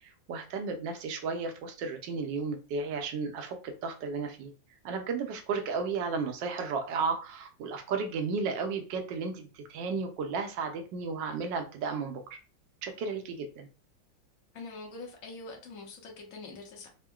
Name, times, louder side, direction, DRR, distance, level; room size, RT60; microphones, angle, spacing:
voice 1, 0.0-4.5 4.8-12.2 12.8-13.7, right 4 dB, 75° right, 5 dB, 1.2 m, -34 dB
voice 2, 14.5-16.9, left 3 dB, 55° left, 0 dB, 1.1 m, -44 dB
3.6 x 2.1 x 2.3 m, 0.35 s
omnidirectional pair, 2.0 m